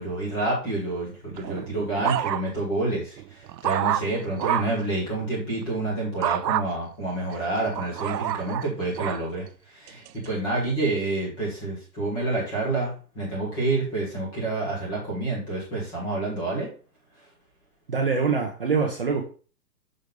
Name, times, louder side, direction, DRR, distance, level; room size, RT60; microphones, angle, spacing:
voice 1, 0.0-16.7, right 2 dB, 10° left, -3 dB, 1.6 m, -28 dB
sound 1, 1.4-2.7 3.2-4.8 6.2-6.7 7.3-9.2 9.9-10.3, right 12 dB, 80° right, 0.6 m, -28 dB
voice 2, 17.9-19.2, right 5 dB, 35° right, 1 dB, 0.8 m, -24 dB
6.3 x 3.3 x 5.2 m, 0.38 s
hypercardioid pair, 180°, 50 cm